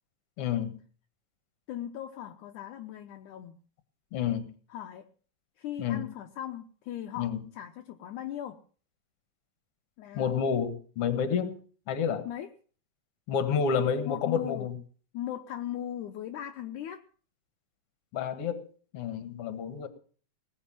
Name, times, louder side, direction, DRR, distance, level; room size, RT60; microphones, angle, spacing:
voice 1, 0.4-0.7 4.1-4.5 5.8-6.1 7.2-7.4 10.1-11.6 11.9-12.3 13.3-14.7 18.1-18.7 18.9-19.9, left 7 dB, 50° left, 9 dB, 2.2 m, -29 dB
voice 2, 1.7-3.6 4.7-5.1 5.6-8.6 10.0-10.4 12.3-12.5 14.1-14.7 15.1-17.0, left 11 dB, 70° left, 4 dB, 2.1 m, -38 dB
19.5 x 7.8 x 7.4 m, 0.43 s
omnidirectional pair, 4.1 m